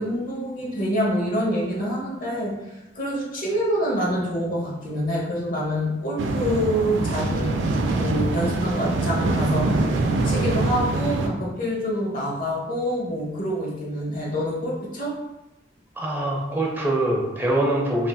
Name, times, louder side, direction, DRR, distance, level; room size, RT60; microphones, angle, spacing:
voice 1, 0.0-7.6 7.9-10.0 10.2-15.1, equal, 50° left, -4 dB, 0.9 m, -26 dB
sound 1, 6.2-11.3, right 2 dB, 75° right, 0.3 m, -24 dB
voice 2, 16.0-18.1, right 1 dB, 10° right, -2 dB, 0.5 m, -23 dB
3.2 x 2.7 x 2.2 m, 0.97 s
head